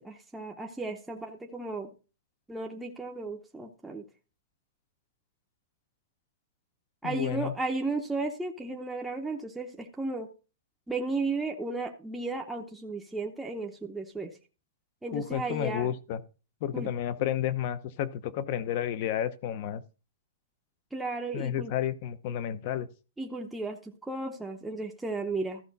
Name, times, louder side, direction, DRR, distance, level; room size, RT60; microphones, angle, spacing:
voice 1, 0.0-1.9 2.5-4.0 7.0-10.3 10.9-14.3 15.0-15.9 16.7-16.9 20.9-21.7 23.2-25.6, right 3 dB, 5° right, 0.8 m, -34 dB
voice 2, 7.0-7.5 15.1-16.2 16.6-19.8 21.3-22.9, left 10 dB, 40° left, 0.8 m, -31 dB
14.0 x 5.7 x 4.0 m
hypercardioid pair, 165°, 0 cm